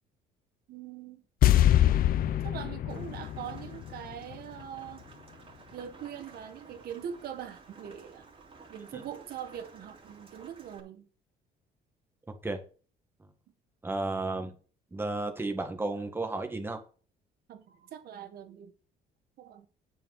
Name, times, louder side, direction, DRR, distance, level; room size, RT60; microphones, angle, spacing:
voice 1, 0.7-1.2 2.4-5.1 5.7-8.3 8.7-11.1 17.5-18.7 19.4-19.7, right 9 dB, 65° right, 1.7 m, -42 dB
sound 1, 1.4-4.6 4.9-5.0, left 12 dB, 60° left, 0.6 m, -25 dB
Rain, 2.9-10.8, right 4 dB, 30° right, 3.0 m, -53 dB
voice 2, 12.3-12.6 13.2-13.3 13.8-14.5 14.9-16.8, right 2 dB, 15° right, 1.8 m, -33 dB
8.8 x 5.2 x 6.5 m
cardioid pair, 110°, 17 cm